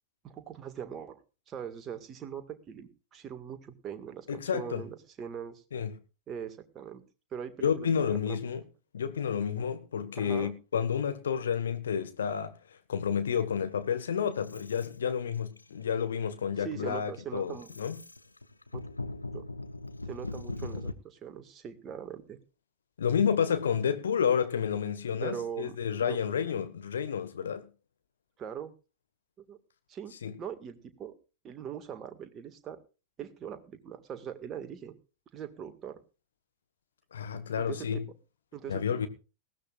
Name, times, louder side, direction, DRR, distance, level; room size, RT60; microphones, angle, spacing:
voice 1, 0.2-1.2 1.5-5.6 6.3-7.0 7.3-8.4 10.2-10.5 16.6-17.7 18.7-18.8 19.3-19.5 20.1-22.4 25.2-25.8 26.0-26.2 28.4-28.7 29.4-29.6 29.9-30.1 30.4-31.2 31.4-32.8 33.2-34.9 35.3-36.0 37.6-38.0 38.5-39.1, right 8 dB, 25° right, 1.8 m, -41 dB
voice 2, 4.3-4.8 5.7-5.9 7.6-8.6 8.9-12.5 12.9-18.0 23.0-27.7 30.2-30.3 37.1-38.0 38.7-39.1, left 7 dB, 65° left, 1.5 m, -30 dB
sound 1, 13.4-15.0 15.3-15.8 16.3-16.6 17.0-20.9, left 2 dB, 80° left, 0.9 m, -40 dB
19.5 x 15.5 x 2.5 m
figure-of-eight pair, 90°, 0 cm